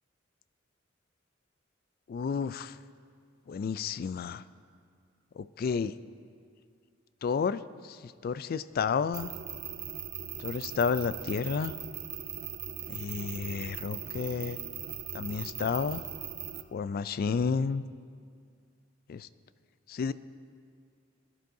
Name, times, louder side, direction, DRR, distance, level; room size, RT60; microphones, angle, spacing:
voice 1, 2.1-2.7 3.5-4.4 5.4-5.9 7.2-7.6 8.2-9.3 10.4-11.8 12.9-14.6 15.1-16.0 16.7-17.8 19.1-19.3 19.9-20.1, left 5 dB, 50° left, 15 dB, 0.3 m, -31 dB
sound 1, 9.1-16.6, right 9 dB, 55° right, 0.6 m, -39 dB
20.5 x 11.5 x 2.7 m, 2.2 s
head